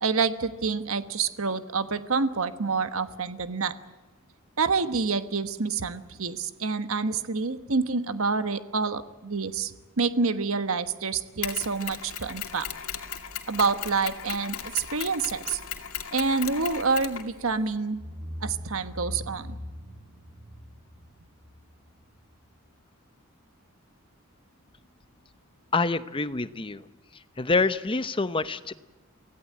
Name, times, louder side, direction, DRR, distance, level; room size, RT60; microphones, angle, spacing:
voice 1, 0.0-3.7 4.6-12.7 13.5-15.6 16.1-18.0 18.4-19.5, right 4 dB, 70° right, 11 dB, 1.2 m, -27 dB
Mechanisms, 11.4-17.8, left 9 dB, 80° left, 2.3 m, -37 dB
sound 1, 17.3-17.5 17.9-22.5, equal, 25° right, 6.1 m, -41 dB
voice 2, 25.7-26.8 27.4-28.7, left 3 dB, 25° left, 13 dB, 0.8 m, -26 dB
24.0 x 17.0 x 8.6 m, 1.2 s
head